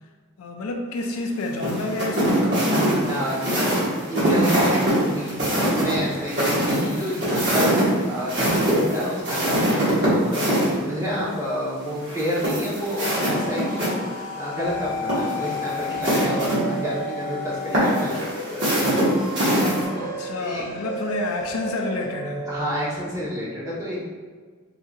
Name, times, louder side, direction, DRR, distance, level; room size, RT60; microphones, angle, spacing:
voice 1, 0.4-2.5 20.0-22.5, left 2 dB, 70° left, 3 dB, 0.4 m, -29 dB
sound 1, 1.6-10.7 12.0-13.9 14.2-14.3 14.9-16.6 17.7-19.8, right 1 dB, 55° right, 1.5 m, -23 dB
voice 2, 3.1-5.5 5.8-18.2 19.9-20.1 20.4-20.7 22.5-24.0, equal, 15° right, -8 dB, 0.9 m, -29 dB
sound 2, 12.6-23.0, left 1 dB, 50° left, 1.2 m, -33 dB
4.7 x 2.7 x 2.4 m, 1.5 s
head